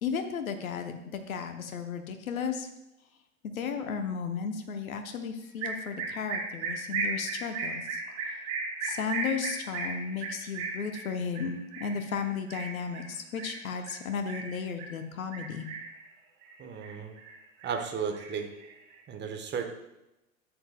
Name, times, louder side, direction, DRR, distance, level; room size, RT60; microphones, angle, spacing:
voice 1, 0.0-2.7 3.4-8.0 8.8-15.7, left 6 dB, 75° left, 7 dB, 0.9 m, -34 dB
sound 1, 5.6-14.9 15.3-16.0 16.4-17.3 17.6-18.9, right 4 dB, 45° right, 2.5 m, -36 dB
voice 2, 16.6-17.1 17.6-18.5 19.1-19.6, right 6 dB, 25° right, 5 dB, 1.1 m, -34 dB
12.0 x 7.8 x 2.3 m, 0.90 s
figure-of-eight pair, 85°, 42 cm